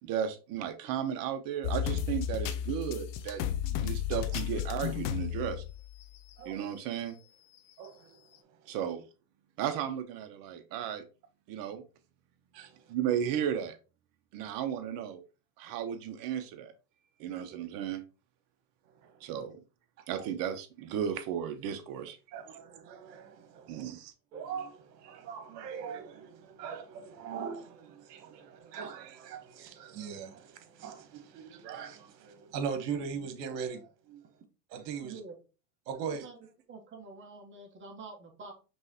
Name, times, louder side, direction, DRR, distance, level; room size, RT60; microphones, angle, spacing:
voice 1, 0.0-5.6 6.4-7.1 8.7-9.0 9.6-11.0 11.5-11.8 12.9-13.8 14.3-15.2 15.6-16.7 17.2-18.0 19.2-19.6 20.1-22.2 23.7-24.1, right 9 dB, 45° right, 0.9 m, -34 dB
sound 1, 1.6-6.3 6.8-6.9 7.8-7.9, left 10 dB, 45° left, 0.6 m, -33 dB
voice 2, 6.4-6.7 7.8-8.2 8.6-8.7 12.5-12.8 19.0-19.3 22.3-23.8 24.3-34.2 34.7-35.2 35.9-36.3, right 6 dB, 75° right, 1.3 m, -41 dB
voice 3, 35.0-35.3 36.0-36.4 36.7-38.5, right 4 dB, 25° right, 1.3 m, -47 dB
5.4 x 3.2 x 2.9 m
supercardioid pair, 115°, 48 cm